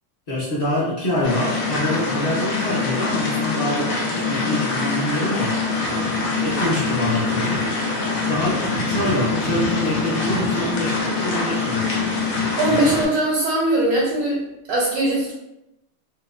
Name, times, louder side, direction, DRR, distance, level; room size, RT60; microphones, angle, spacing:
voice 1, 0.3-5.5 6.4-7.6 8.1-11.9, left 1 dB, 40° left, -10 dB, 0.6 m, -25 dB
sound 1, 1.2-13.1, left 3 dB, 70° left, 1.0 m, -24 dB
voice 2, 12.6-14.4 14.7-15.3, right 1 dB, 85° right, -5 dB, 1.1 m, -20 dB
2.8 x 2.0 x 2.3 m, 0.90 s
omnidirectional pair, 1.6 m